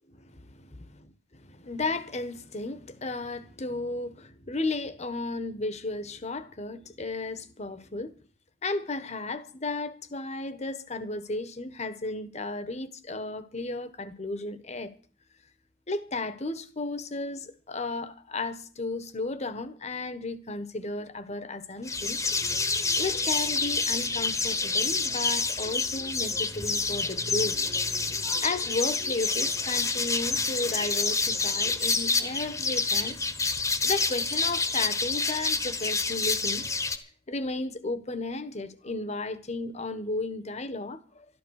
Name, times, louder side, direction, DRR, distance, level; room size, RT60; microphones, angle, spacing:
voice 1, 0.1-8.2 8.6-15.0 15.9-22.2 23.0-27.6 28.4-33.2 33.6-36.7 37.3-41.3, left 2 dB, 35° left, 1.3 m, -34 dB
sound 1, 21.9-37.0, left 4 dB, 15° left, 1.2 m, -28 dB
12.5 x 12.5 x 6.5 m
head